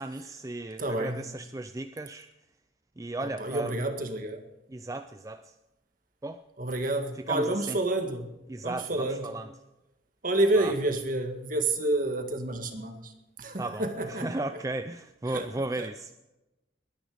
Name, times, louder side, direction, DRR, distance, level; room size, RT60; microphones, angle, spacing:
voice 1, 0.0-2.3 3.0-3.7 4.7-5.6 6.2-6.4 7.3-7.8 8.5-9.5 10.6-10.7 13.6-16.1, right 2 dB, 15° right, 9 dB, 0.4 m, -35 dB
voice 2, 0.8-1.2 3.2-4.4 6.6-8.3 8.6-9.3 10.2-13.1 13.4-14.4 15.3-15.5 15.8-15.9, right 2 dB, 45° right, 6 dB, 1.9 m, -29 dB
21.5 x 10.5 x 5.1 m, 0.98 s
head